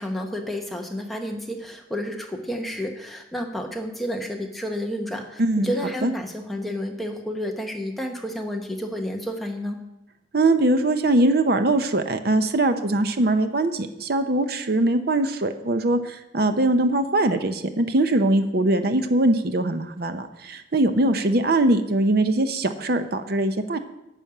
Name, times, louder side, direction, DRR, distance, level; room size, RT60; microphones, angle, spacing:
voice 1, 0.0-9.8, equal, ahead, 1 dB, 1.1 m, -30 dB
voice 2, 5.4-5.7 6.0-6.1 10.3-23.8, right 2 dB, 55° right, 8 dB, 0.8 m, -21 dB
10.0 x 5.4 x 8.3 m, 0.93 s
head